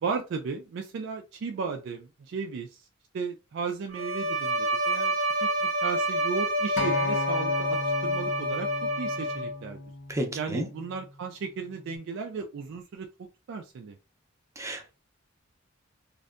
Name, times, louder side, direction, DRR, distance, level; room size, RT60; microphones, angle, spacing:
voice 1, 0.0-2.9 3.1-9.8 10.3-14.0, right 5 dB, 65° right, 0.3 m, -35 dB
Bowed string instrument, 3.9-9.7, right 1 dB, 90° right, 0.9 m, -28 dB
Acoustic guitar, 6.8-11.0 11.9-12.0, left 3 dB, 60° left, 0.5 m, -35 dB
voice 2, 10.1-10.7 14.6-14.9, equal, 15° right, 0.5 m, -32 dB
2.6 x 2.2 x 2.4 m
head